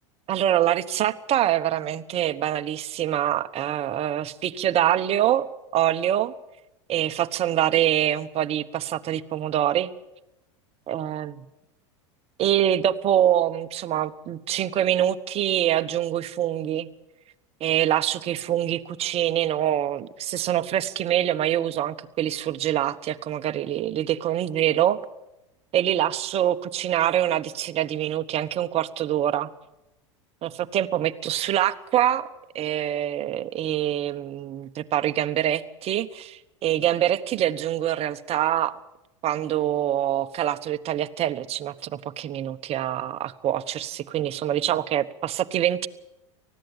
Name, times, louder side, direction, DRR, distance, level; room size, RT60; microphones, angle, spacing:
voice 1, 0.3-6.3 6.9-9.9 10.9-11.4 12.4-16.9 17.6-25.0 25.7-29.5 30.4-32.3 32.5-38.8 39.2-45.9, right 11 dB, 40° right, 11 dB, 1.1 m, -25 dB
19.5 x 15.0 x 8.9 m, 0.93 s
hypercardioid pair, 95°, 16 cm